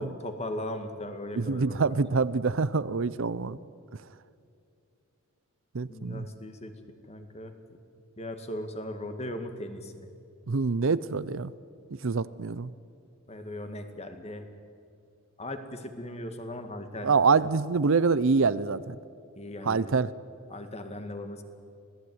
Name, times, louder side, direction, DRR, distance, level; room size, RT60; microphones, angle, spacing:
voice 1, 0.0-1.9 5.9-6.7 7.1-7.6 8.2-10.1 13.3-14.4 15.4-17.1 19.4-19.9 20.5-21.4, left 1 dB, 30° left, 7 dB, 2.0 m, -38 dB
voice 2, 1.3-3.6 3.9-4.0 5.7-6.3 10.5-11.5 11.9-12.7 17.0-19.0 19.6-20.1, right 4 dB, 65° right, 17 dB, 0.6 m, -26 dB
26.5 x 18.0 x 9.5 m, 2.5 s
head